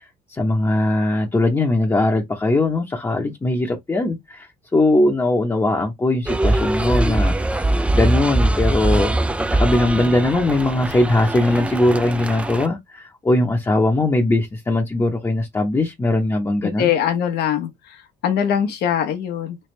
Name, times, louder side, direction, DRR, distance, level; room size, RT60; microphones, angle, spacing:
voice 1, 0.3-7.3 7.9-9.1 9.5-16.9, left 2 dB, 15° left, 0.9 m, -20 dB
sound 1, 6.3-12.7, right 1 dB, 5° right, 0.4 m, -21 dB
voice 2, 16.6-19.6, left 9 dB, 75° left, 1.1 m, -22 dB
3.4 x 3.3 x 3.2 m
cardioid pair, 110°, 17 cm